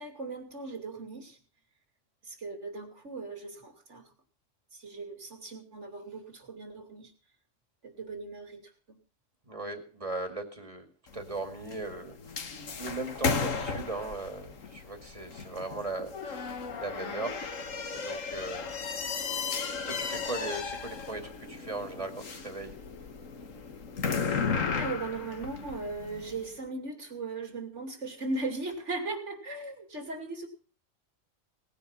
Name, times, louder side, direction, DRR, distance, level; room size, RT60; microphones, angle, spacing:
voice 1, 0.0-1.4 2.3-4.1 4.7-7.1 7.8-8.6 8.9-9.0 24.8-30.5, right 3 dB, 65° right, 5 dB, 3.1 m, -38 dB
voice 2, 9.5-17.4 17.9-18.8 19.7-22.7, right 2 dB, 25° right, 5 dB, 2.3 m, -38 dB
sound 1, 11.1-26.5, left 5 dB, 80° left, 1.7 m, -35 dB
18.5 x 10.0 x 5.8 m, 0.40 s
omnidirectional pair, 1.3 m